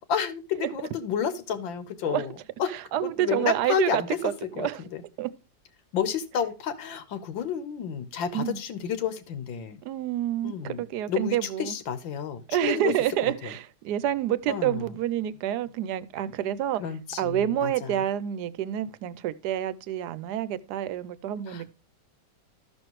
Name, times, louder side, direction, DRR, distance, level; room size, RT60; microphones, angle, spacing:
voice 1, 0.1-2.7 3.0-4.2 4.6-5.0 5.9-9.8 10.4-12.9 13.2-13.6 14.5-14.9 16.8-18.0 21.5-21.7, left 8 dB, 90° left, 1.8 m, -31 dB
voice 2, 2.9-4.8 5.2-5.3 8.3-8.6 9.8-11.7 12.5-16.8 17.2-21.7, right 12 dB, 70° right, 1.1 m, -28 dB
13.5 x 6.2 x 3.0 m
omnidirectional pair, 2.0 m